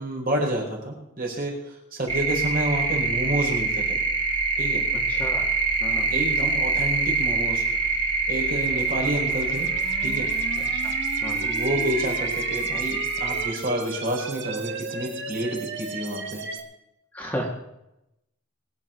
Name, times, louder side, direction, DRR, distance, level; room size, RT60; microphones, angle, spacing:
voice 1, 0.0-1.5 2.0-4.0 4.6-4.8 6.1-7.6 8.3-9.7 10.0-10.3 11.4-16.4, right 1 dB, 45° right, -1 dB, 4.9 m, -29 dB
sound 1, 2.1-13.5, right 4 dB, 25° right, 2.8 m, -25 dB
voice 2, 4.9-5.5 5.8-6.1 10.8-10.9 11.2-11.5 17.1-17.5, equal, 10° left, -2 dB, 2.2 m, -33 dB
sound 2, 8.6-16.6, right 3 dB, 60° right, 1.7 m, -36 dB
23.0 x 9.7 x 4.6 m, 0.86 s
head